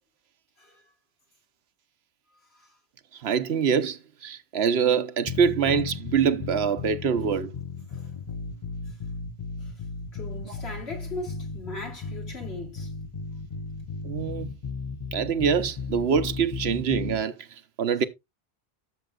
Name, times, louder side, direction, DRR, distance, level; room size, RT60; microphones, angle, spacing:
voice 1, 3.1-7.5 10.5-10.6 14.0-14.5 15.1-17.4 17.8-18.0, right 7 dB, 85° right, 1.1 m, -25 dB
sound 1, 5.3-17.2, left 4 dB, 30° left, 0.8 m, -35 dB
voice 2, 10.1-12.9, left 2 dB, 85° left, 3.3 m, -39 dB
12.5 x 7.2 x 2.4 m
omnidirectional pair, 1.0 m